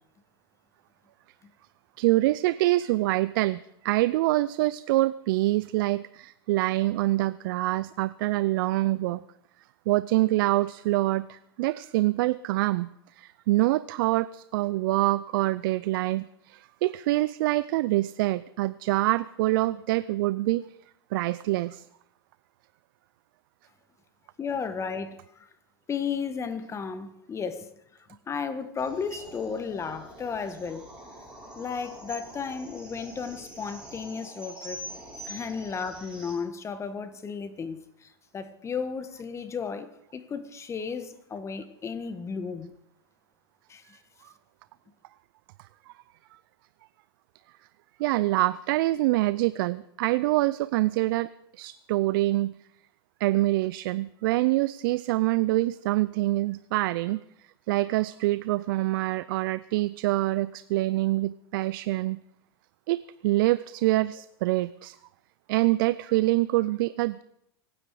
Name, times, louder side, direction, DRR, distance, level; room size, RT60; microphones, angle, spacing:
voice 1, 2.0-9.2 9.9-20.6 21.1-21.8 44.2-44.3 48.0-51.3 51.6-52.5 53.2-57.2 57.7-62.2 62.9-65.0 65.5-67.2, right 18 dB, 60° right, 0.5 m, -25 dB
voice 2, 24.4-25.5 25.9-27.7 28.3-30.9 31.6-34.9 35.2-42.7 43.7-44.0, left 6 dB, 20° left, 1.5 m, -34 dB
sound 1, 28.8-36.4, right 1 dB, 5° right, 6.5 m, -44 dB
24.5 x 9.7 x 4.9 m
hypercardioid pair, 105°, 13 cm